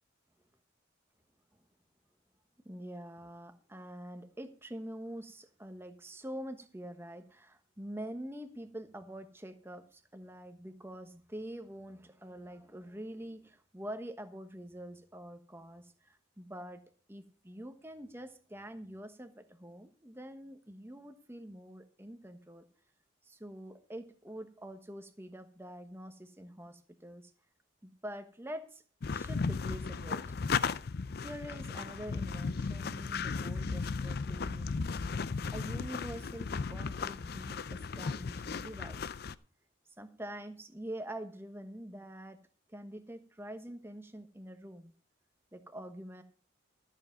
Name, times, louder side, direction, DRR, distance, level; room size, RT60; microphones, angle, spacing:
voice 1, 2.6-16.8 17.1-22.6 23.2-27.3 27.8-28.8 29.1-30.2 31.2-35.0 35.5-39.1 40.0-42.4 42.7-44.9 45.5-46.2, right 1 dB, 10° right, 7 dB, 1.1 m, -45 dB
sound 1, 29.0-39.3, left 5 dB, 50° left, 0.5 m, -35 dB
13.5 x 7.3 x 5.8 m, 0.42 s
head